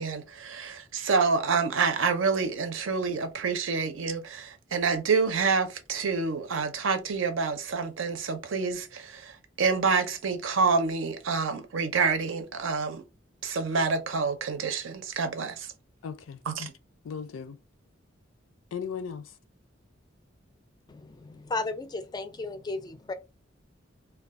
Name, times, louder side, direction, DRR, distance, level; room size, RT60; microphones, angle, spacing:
voice 1, 0.0-13.0 13.4-15.7 16.5-16.7, right 5 dB, 75° right, 0.6 m, -27 dB
voice 2, 16.0-16.7 17.0-17.6 18.7-19.3, left 6 dB, 90° left, 0.4 m, -37 dB
voice 3, 20.9-23.1, left 3 dB, 20° left, 0.3 m, -34 dB
2.3 x 2.2 x 3.5 m
head